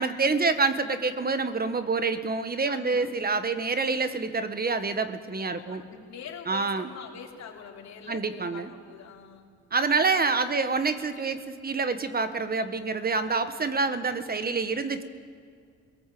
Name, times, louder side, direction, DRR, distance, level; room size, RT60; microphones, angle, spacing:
voice 1, 0.0-5.8 6.5-6.9 8.1-8.7 9.7-15.0, right 4 dB, 30° right, 10 dB, 1.3 m, -27 dB
voice 2, 2.6-3.1 5.5-9.4 9.9-10.0, left 7 dB, 60° left, -1 dB, 3.4 m, -44 dB
22.0 x 18.0 x 7.7 m, 2.2 s
cardioid pair, 90°, 30 cm